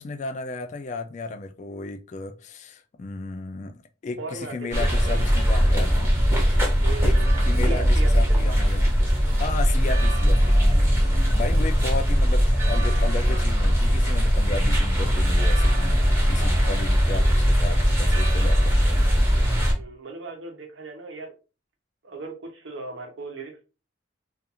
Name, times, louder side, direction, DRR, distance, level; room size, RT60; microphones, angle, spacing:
voice 1, 0.0-6.1 7.0-7.2 7.4-8.9 9.4-11.1 11.3-18.9, left 3 dB, 40° left, 0.3 m, -34 dB
voice 2, 4.2-5.2 6.3-6.5 6.8-7.3 7.6-8.4 11.7-11.9 16.5-16.8 19.8-21.3 22.0-23.6, right 3 dB, 75° right, 0.8 m, -37 dB
sound 1, 4.7-19.7, equal, 15° right, 0.7 m, -20 dB
2.4 x 2.4 x 2.7 m
head